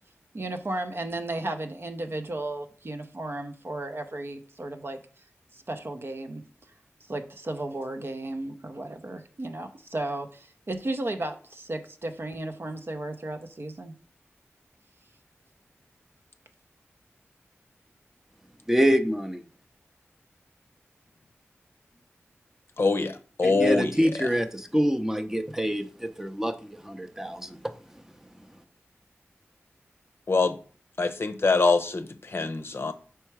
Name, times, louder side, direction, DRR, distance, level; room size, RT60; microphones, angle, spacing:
voice 1, 0.3-5.0 5.5-6.4 7.1-13.9, right 2 dB, 50° right, 0.8 m, -34 dB
voice 2, 18.7-19.4 23.4-27.6, equal, 10° right, 0.7 m, -26 dB
voice 3, 22.8-24.3 30.3-30.6 31.0-32.9, left 3 dB, 55° left, 0.6 m, -24 dB
4.7 x 4.4 x 4.7 m
cardioid pair, 45°, 5 cm